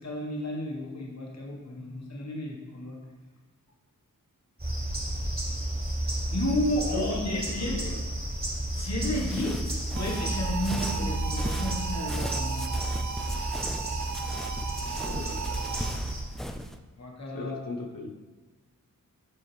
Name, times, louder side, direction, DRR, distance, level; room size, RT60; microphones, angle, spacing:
voice 1, 0.0-3.0 6.3-7.8 8.7-12.7 17.0-17.6, left 1 dB, 50° left, -2 dB, 1.4 m, -32 dB
sound 1, 4.6-16.2, right 1 dB, 25° right, 2.2 m, -32 dB
voice 2, 6.9-8.0 15.0-16.0 17.3-18.1, left 3 dB, 80° left, 2 dB, 0.9 m, -39 dB
sound 2, 9.0-16.8, equal, ahead, 0.3 m, -39 dB
sound 3, 10.0-16.2, right 7 dB, 60° right, 0.5 m, -37 dB
7.7 x 4.9 x 3.3 m, 1.3 s
wide cardioid pair, 70°, 34 cm